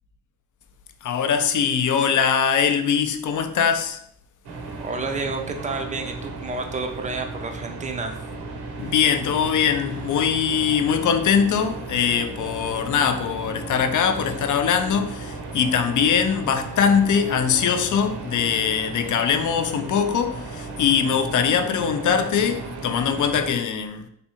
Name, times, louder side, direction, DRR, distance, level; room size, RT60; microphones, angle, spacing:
voice 1, 1.0-4.0 8.8-24.1, left 7 dB, 40° left, 0.5 m, -22 dB
sound 1, 4.4-23.5, right 3 dB, 50° right, 0.8 m, -35 dB
voice 2, 4.8-8.2, right 3 dB, 15° right, 0.5 m, -30 dB
3.3 x 2.6 x 2.9 m
hypercardioid pair, 50°, 49 cm